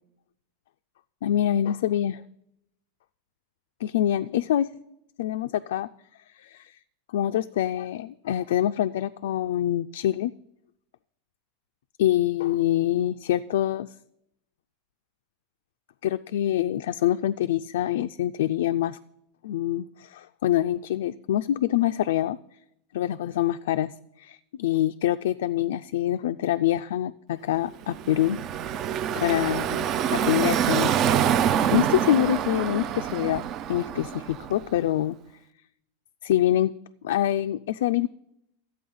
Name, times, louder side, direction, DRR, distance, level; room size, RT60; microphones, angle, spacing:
voice 1, 1.2-2.2 3.8-4.7 5.2-5.9 6.4-6.8 7.1-10.3 12.0-13.9 16.0-19.0 19.4-22.4 22.9-28.4 29.1-29.9 30.1-30.9 31.7-33.4 33.7-35.2 36.2-36.7 37.0-38.1, left 12 dB, 75° left, 8 dB, 0.3 m, -25 dB
Car passing by / Traffic noise roadway noise, 27.8-34.8, right 9 dB, 30° right, 0.4 m, -26 dB
13.0 x 8.5 x 5.5 m, 0.80 s
supercardioid pair, 170°, 0 cm